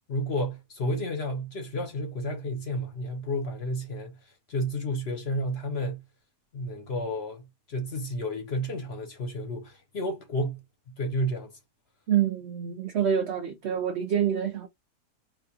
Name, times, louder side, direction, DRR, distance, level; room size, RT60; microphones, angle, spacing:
voice 1, 0.1-6.0 6.5-10.6 11.0-11.5, equal, 50° left, 0.8 m, -31 dB
voice 2, 12.1-14.7, right 9 dB, 85° right, 0.5 m, -26 dB
4.1 x 2.3 x 2.7 m
omnidirectional pair, 1.7 m